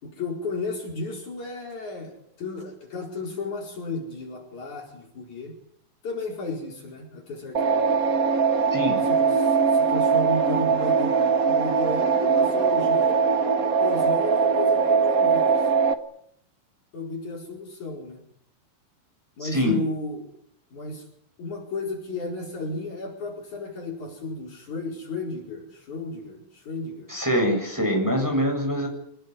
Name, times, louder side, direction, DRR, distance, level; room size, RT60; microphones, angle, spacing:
voice 1, 0.0-5.6 6.0-7.9 9.0-13.4 13.8-15.7 16.9-18.2 19.4-20.3 20.7-21.1 21.4-27.1, left 2 dB, 55° left, 1 dB, 5.8 m, -33 dB
sound 1, 7.5-15.9, right 5 dB, 45° right, 1.1 m, -21 dB
voice 2, 8.7-9.0 19.4-19.8 27.1-28.9, equal, 5° right, 2 dB, 7.8 m, -24 dB
25.0 x 21.0 x 9.8 m, 0.69 s
omnidirectional pair, 4.1 m